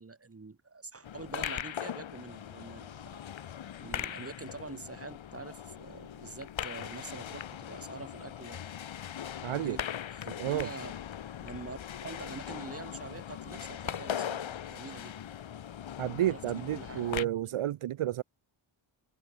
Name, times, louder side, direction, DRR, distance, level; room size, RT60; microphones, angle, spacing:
voice 1, 0.0-3.2 3.8-8.7 9.5-10.9 11.4-15.2 16.2-17.1 17.4-17.6, right 3 dB, 25° right, 7.0 m, -45 dB
sound 1, 1.0-17.2, left 9 dB, 65° left, 1.6 m, -40 dB
voice 2, 9.4-9.8 10.3-10.7 16.0-18.2, right 12 dB, 85° right, 1.0 m, -31 dB
wide cardioid pair, 135°, 50 cm